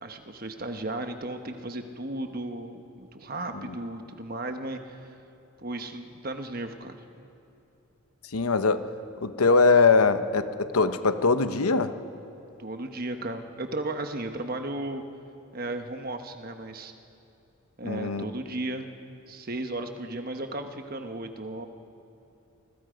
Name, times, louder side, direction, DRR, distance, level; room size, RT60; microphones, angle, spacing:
voice 1, 0.0-5.1 5.6-7.0 12.6-15.0 15.5-16.9 17.8-18.9 19.3-21.7, right 2 dB, 40° right, 6 dB, 1.2 m, -35 dB
voice 2, 8.3-8.8 9.2-11.9 17.8-18.3, left 4 dB, 90° left, 10 dB, 0.9 m, -22 dB
28.0 x 21.5 x 5.2 m, 2.7 s
head